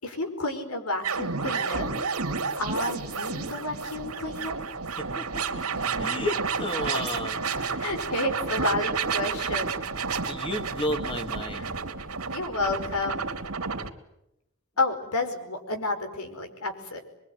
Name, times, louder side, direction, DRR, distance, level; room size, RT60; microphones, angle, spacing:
voice 1, 0.0-1.9 2.6-4.6 7.5-9.8 11.6-11.7 12.0-13.3 14.8-17.0, left 2 dB, 90° left, 7 dB, 5.2 m, -31 dB
sound 1, 1.0-13.9, right 5 dB, 85° right, 2.8 m, -30 dB
voice 2, 5.0-7.4 10.3-11.8, left 1 dB, 25° left, 6 dB, 2.4 m, -33 dB
26.5 x 23.0 x 9.5 m, 0.84 s
head